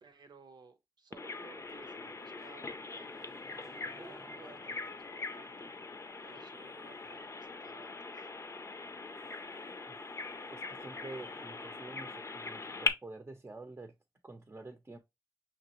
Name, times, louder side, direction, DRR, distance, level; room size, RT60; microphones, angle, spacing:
voice 1, 0.0-3.1 4.0-5.7 6.2-8.3, right 4 dB, 85° right, 0.8 m, -57 dB
Bird vocalization bird call bird song, 1.1-12.9, left 3 dB, 40° left, 0.5 m, -41 dB
sound 1, 1.6-6.6 6.9-7.4 7.7-7.8 8.1-8.2 8.5-12.5, equal, ahead, 0.7 m, -61 dB
voice 2, 10.5-13.9 14.2-15.0, right 2 dB, 30° right, 0.7 m, -48 dB
5.8 x 2.9 x 3.0 m
wide cardioid pair, 90°, 7 cm